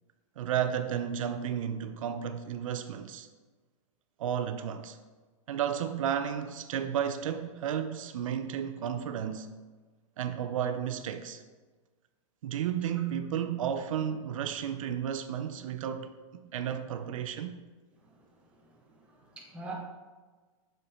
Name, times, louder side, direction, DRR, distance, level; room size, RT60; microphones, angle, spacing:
voice 1, 0.4-3.3 4.2-5.0 5.5-9.5 10.2-11.4 12.4-17.6, right 9 dB, 75° right, 0.5 m, -33 dB
voice 2, 18.9-19.8, right 3 dB, 5° right, 0.9 m, -44 dB
6.4 x 5.3 x 4.2 m
supercardioid pair, 170°, 17 cm